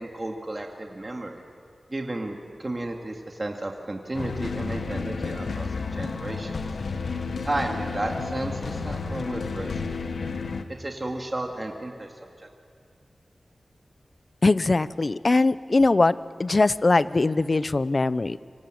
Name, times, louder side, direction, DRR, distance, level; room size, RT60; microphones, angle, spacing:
voice 1, 0.0-1.4 1.9-6.5 7.4-10.0 10.8-12.1 12.4-12.5, right 1 dB, 35° right, 2 dB, 2.3 m, -33 dB
sound 1, 4.1-10.6, left 4 dB, 90° left, 1.5 m, -31 dB
voice 2, 14.4-16.1 16.4-18.4, left 3 dB, 45° left, 16 dB, 0.7 m, -21 dB
28.5 x 25.0 x 7.8 m, 2.2 s
wide cardioid pair, 65°, 0 cm